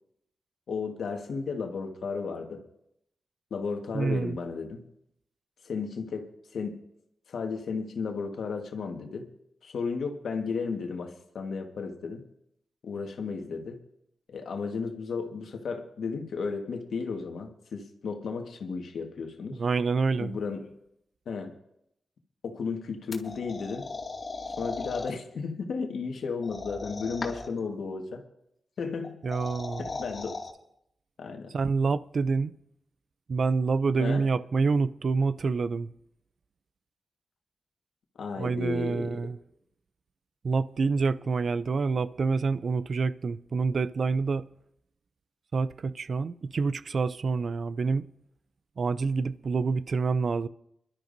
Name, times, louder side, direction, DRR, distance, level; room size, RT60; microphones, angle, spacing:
voice 1, 0.7-2.6 3.5-4.8 5.6-6.8 7.3-9.3 9.6-12.2 12.8-13.8 14.3-19.6 20.2-20.7 21.2-21.5 22.4-23.9 24.6-28.2 28.8-29.2 29.8-30.4 31.2-31.5 34.0-34.3 38.2-39.3, left 5 dB, 80° left, 1.5 m, -34 dB
voice 2, 3.9-4.4 19.5-20.4 29.2-29.9 31.5-32.5 33.3-35.9 38.4-39.4 40.4-44.5 45.5-48.1 48.8-50.5, right 4 dB, 65° right, 0.5 m, -27 dB
sound 1, 23.1-25.1 26.4-27.6 29.0-30.5, left 3 dB, 55° left, 2.2 m, -37 dB
24.5 x 12.0 x 2.7 m
cardioid pair, 55°, 0 cm